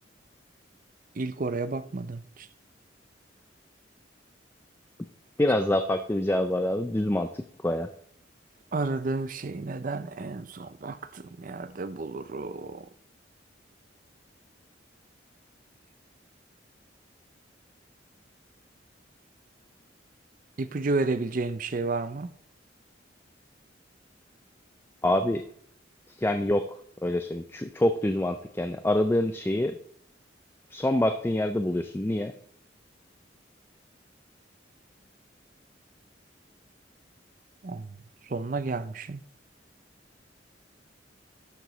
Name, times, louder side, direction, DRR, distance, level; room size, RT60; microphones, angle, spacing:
voice 1, 1.2-2.5 8.7-12.9 20.6-22.3 37.6-37.9 38.3-39.2, right 3 dB, 45° right, 0.5 m, -31 dB
voice 2, 5.4-7.9 25.0-25.4 26.2-26.7 27.0-29.8 30.7-32.3, left 1 dB, 10° left, 0.4 m, -26 dB
12.0 x 5.1 x 4.0 m
head